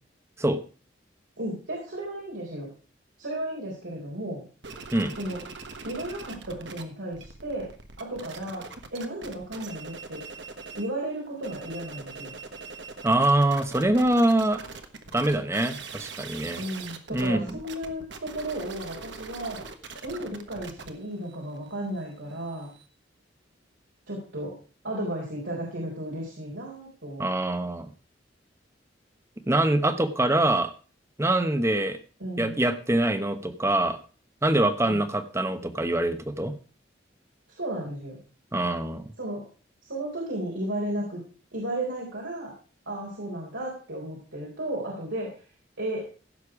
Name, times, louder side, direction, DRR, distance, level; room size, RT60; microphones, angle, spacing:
voice 1, 1.4-2.7 3.2-4.4 5.2-5.4 5.8-7.7 8.0-8.6 8.9-10.2 10.8-12.3 16.5-19.6 20.0-22.7 24.1-24.6 24.8-27.2 32.2-32.6 34.8-35.0 37.5-38.2 39.2-39.4 39.8-41.2 41.5-42.5 42.9-45.4 45.8-46.1, right 1 dB, 85° right, -3 dB, 3.9 m, -34 dB
sound 1, 4.6-6.8 7.1-10.9 11.3-22.9, right 4 dB, 65° right, 1.3 m, -42 dB
voice 2, 13.0-14.6 15.1-16.6 17.1-17.6 27.2-27.9 29.5-30.7 31.2-32.0 32.4-34.0 34.4-36.5 38.5-39.1, right 1 dB, 15° right, 10 dB, 1.0 m, -24 dB
16.0 x 6.9 x 4.9 m, 0.38 s
head